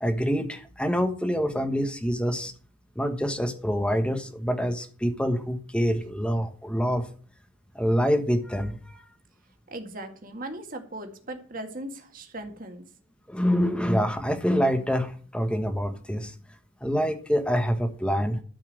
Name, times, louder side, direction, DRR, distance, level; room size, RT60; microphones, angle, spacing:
voice 1, 0.0-2.5 3.0-7.1 7.7-9.0 13.3-16.3 16.8-18.4, equal, 5° left, 7 dB, 1.2 m, -26 dB
voice 2, 9.7-12.8, right 1 dB, 40° right, 4 dB, 2.0 m, -38 dB
13.0 x 5.6 x 7.8 m, 0.43 s
head